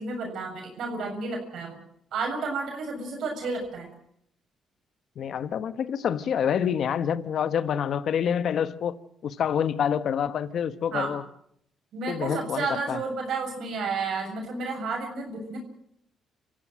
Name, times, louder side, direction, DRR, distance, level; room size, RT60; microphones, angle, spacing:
voice 1, 0.0-1.8 2.1-3.9 10.9-11.2 11.9-15.6, right 4 dB, 75° right, 6.9 m, -31 dB
voice 2, 5.2-9.0 9.2-11.2 12.1-13.0, left 8 dB, 65° left, 1.2 m, -27 dB
27.5 x 15.0 x 7.7 m
cardioid pair, 90°, 0 cm